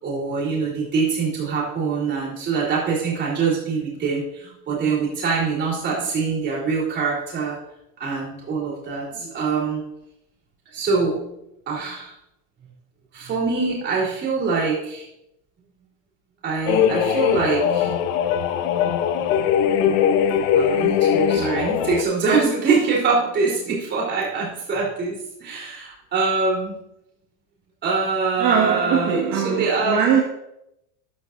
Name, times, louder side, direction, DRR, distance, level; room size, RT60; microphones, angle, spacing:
voice 1, 0.0-7.6 8.0-9.8 10.7-11.3 11.7-12.1 13.1-15.1 16.4-17.9 19.3-20.0 20.5-26.8 27.8-29.2 29.4-30.0, right 4 dB, 25° right, 3.9 m, -24 dB
sound 1, 16.7-22.0, left 8 dB, 70° left, 1.1 m, -20 dB
voice 2, 28.4-30.2, right 7 dB, 50° right, 2.0 m, -21 dB
13.0 x 11.0 x 2.7 m
cardioid pair, 175°, 39 cm